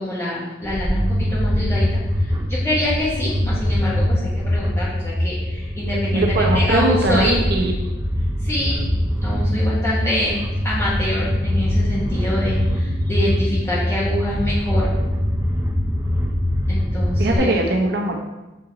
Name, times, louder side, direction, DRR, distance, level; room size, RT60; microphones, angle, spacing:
voice 1, 0.0-7.4 8.4-8.8 9.2-10.4 10.6-14.9 16.7-17.6, left 1 dB, 15° left, -8 dB, 1.3 m, -26 dB
sound 1, 0.6-17.4, left 1 dB, 15° right, 0.7 m, -22 dB
voice 2, 6.1-7.7 17.2-18.2, right 2 dB, 60° right, 1 dB, 0.8 m, -20 dB
6.7 x 3.9 x 4.0 m, 1.1 s
head